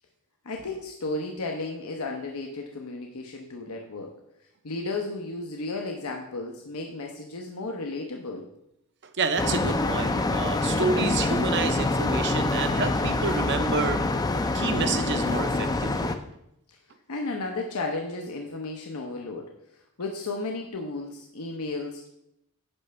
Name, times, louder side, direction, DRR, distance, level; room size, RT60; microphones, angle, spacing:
voice 1, 0.4-4.1 4.6-8.5 16.7-16.8 17.1-22.1, left 3 dB, 75° left, 2 dB, 0.8 m, -34 dB
voice 2, 9.2-14.0 14.5-16.1, right 4 dB, 55° right, 9 dB, 0.8 m, -29 dB
sound 1, 9.4-16.2, left 2 dB, 15° left, 0.5 m, -25 dB
9.9 x 3.3 x 6.8 m, 0.80 s
head